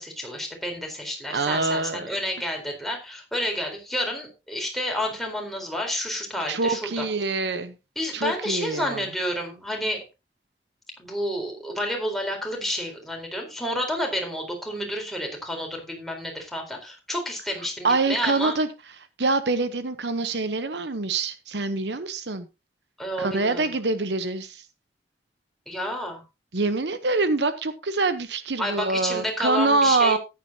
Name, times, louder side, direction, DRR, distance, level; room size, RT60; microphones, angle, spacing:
voice 1, 0.0-7.1 8.0-10.0 11.0-18.5 23.0-23.6 25.7-26.2 28.6-30.2, equal, ahead, 4.0 m, -30 dB
voice 2, 1.3-2.1 6.5-7.7 8.1-9.0 17.8-18.7 19.2-22.5 23.2-24.6 26.5-30.2, right 3 dB, 70° right, 1.0 m, -25 dB
14.0 x 10.5 x 2.8 m
head